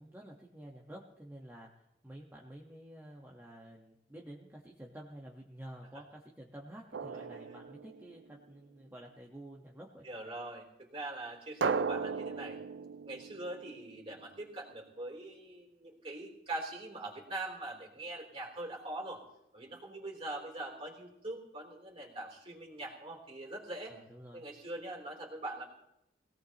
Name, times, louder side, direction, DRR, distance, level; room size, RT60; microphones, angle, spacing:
voice 1, 0.0-10.0 23.9-24.5, right 1 dB, 10° right, -2 dB, 1.3 m, -50 dB
Drum, 6.9-8.5 11.6-14.3, right 5 dB, 75° right, 0.5 m, -37 dB
voice 2, 10.0-12.6 13.1-19.2 19.5-23.9 24.3-25.6, right 2 dB, 30° right, -1 dB, 3.6 m, -42 dB
21.5 x 17.5 x 3.0 m, 0.84 s
head